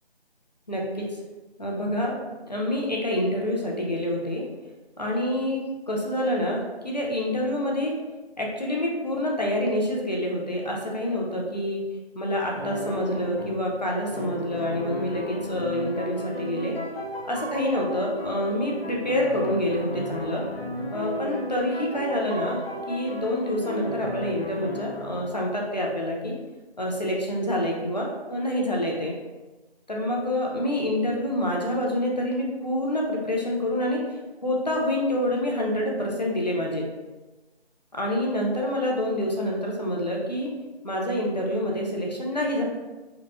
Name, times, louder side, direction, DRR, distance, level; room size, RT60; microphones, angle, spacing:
voice 1, 0.7-1.1 1.6-2.2 2.5-4.4 5.0-7.9 8.4-11.8 12.1-16.8 17.2-20.4 20.9-26.3 26.8-29.1 29.9-34.0 34.4-36.8 37.9-40.5 40.8-42.6, left 1 dB, 40° left, -2 dB, 0.5 m, -27 dB
sound 1, 12.5-13.7 14.1-25.4, left 1 dB, 60° left, 1.1 m, -34 dB
3.7 x 2.3 x 2.8 m, 1.2 s
figure-of-eight pair, 165°, 32 cm